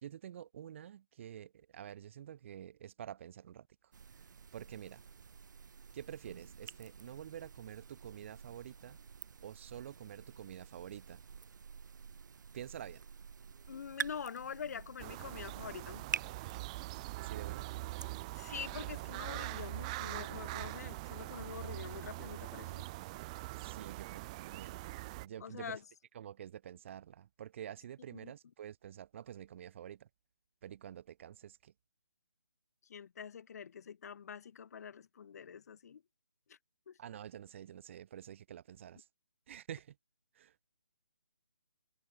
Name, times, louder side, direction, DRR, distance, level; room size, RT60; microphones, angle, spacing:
voice 1, 0.0-3.7 4.1-4.2 4.5-5.0 5.9-9.0 9.4-11.2 12.5-13.0 17.2-17.7 23.6-24.8 25.2-25.8 26.1-30.1 30.6-31.7 37.0-39.1 39.5-40.0 40.3-40.6, right 10 dB, 35° right, 2.1 m, -48 dB
sound 1, 3.9-18.2, right 6 dB, 60° right, 1.0 m, -48 dB
voice 2, 13.7-16.1 18.4-22.9 25.4-25.8 28.1-28.3 32.9-36.0 36.5-36.6 36.9-37.0, left 7 dB, 45° left, 2.1 m, -45 dB
sound 2, 15.0-25.3, right 21 dB, 20° right, 0.8 m, -43 dB
hypercardioid pair, 160°, 11 cm